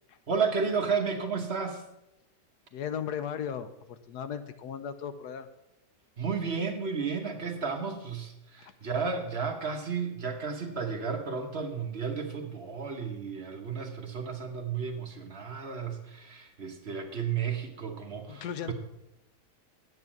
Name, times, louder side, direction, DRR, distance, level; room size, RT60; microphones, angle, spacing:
voice 1, 0.3-1.8 6.2-18.7, right 5 dB, 45° right, 4 dB, 1.0 m, -33 dB
voice 2, 2.7-5.5 18.3-18.7, left 8 dB, 70° left, 11 dB, 1.2 m, -36 dB
9.3 x 7.9 x 6.0 m, 0.88 s
omnidirectional pair, 1.9 m